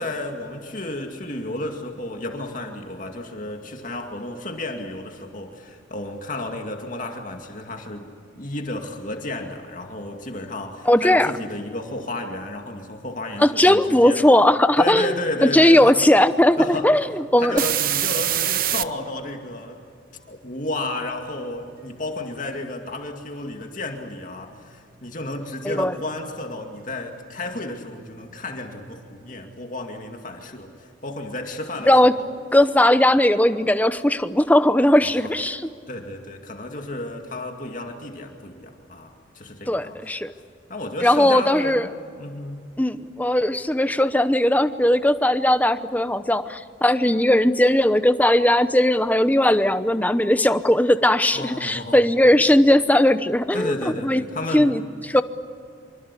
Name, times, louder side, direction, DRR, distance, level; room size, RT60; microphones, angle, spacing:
voice 1, 0.0-8.1 8.4-14.2 14.8-16.0 16.6-17.0 17.4-19.8 20.3-32.3 35.0-35.2 35.9-40.0 40.3-40.4 40.7-41.9 42.2-42.6 51.3-52.0 53.5-54.7, left 1 dB, 40° left, 3 dB, 2.3 m, -32 dB
voice 2, 10.9-11.3 13.4-15.1 15.4-16.6 16.8-17.6 25.6-25.9 31.9-32.1 32.5-35.6 39.7-40.3 41.0-41.9 42.8-53.8 54.0-54.2 54.5-55.2, left 1 dB, 10° left, 11 dB, 0.8 m, -18 dB
sound 1, 16.5-16.6 16.9-18.9 27.2-27.3 27.7-29.4, right 12 dB, 45° right, 0.8 m, -25 dB
25.5 x 25.0 x 8.5 m, 2.4 s
head